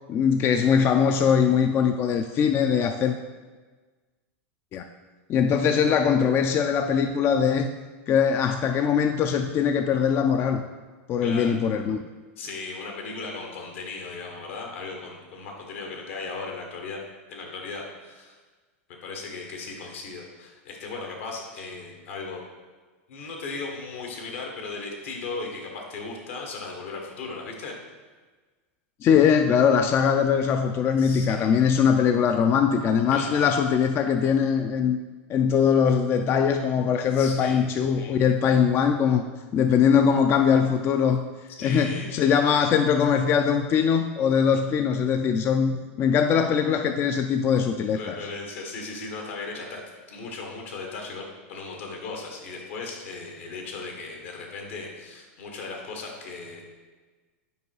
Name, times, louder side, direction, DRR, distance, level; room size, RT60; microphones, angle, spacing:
voice 1, 0.1-3.1 4.7-4.8 5.3-7.7 8.1-10.6 11.1-12.0 29.0-35.0 35.3-39.2 39.5-41.2 41.6-48.2, left 7 dB, 30° left, 6 dB, 0.3 m, -21 dB
voice 2, 11.2-11.6 12.4-17.0 17.3-18.4 19.0-22.4 23.1-27.8 31.0-31.5 33.1-33.4 37.1-37.6 41.5-42.1 47.9-56.6, left 3 dB, 75° left, 1 dB, 1.4 m, -37 dB
5.5 x 4.5 x 4.7 m, 1.4 s
hypercardioid pair, 120°, 7 cm